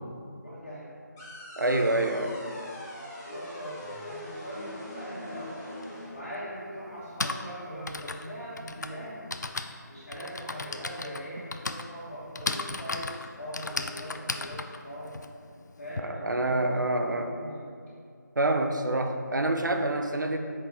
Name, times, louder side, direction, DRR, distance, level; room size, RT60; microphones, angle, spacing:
voice 1, 0.4-0.9 1.7-2.6 3.2-5.8 6.1-9.3 9.9-15.2 15.8-17.7, equal, 40° left, -9 dB, 1.2 m, -41 dB
sound 1, 1.2-6.2, left 1 dB, 10° left, 0.6 m, -42 dB
voice 2, 1.6-2.3 16.0-17.3 18.4-20.4, right 2 dB, 75° right, 5 dB, 0.6 m, -27 dB
Typing, 5.8-5.9 6.9-16.0, left 3 dB, 65° left, 0.4 m, -36 dB
6.3 x 4.1 x 4.0 m, 2.4 s
figure-of-eight pair, 170°, 10 cm